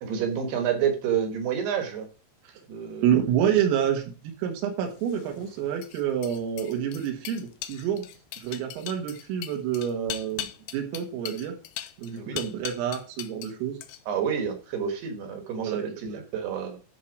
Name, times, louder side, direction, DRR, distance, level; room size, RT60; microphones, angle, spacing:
voice 1, 0.0-2.1 2.7-3.1 12.1-12.4 14.1-16.8, right 8 dB, 65° right, 5 dB, 3.0 m, -29 dB
voice 2, 3.0-8.1 8.4-10.5 10.7-11.6 12.0-13.8 15.6-16.2, right 9 dB, 90° right, 2 dB, 4.2 m, -28 dB
sound 1, 5.0-13.5 13.8-14.3, left 12 dB, 85° left, 2.4 m, -39 dB
13.0 x 4.5 x 4.6 m, 0.37 s
omnidirectional pair, 5.8 m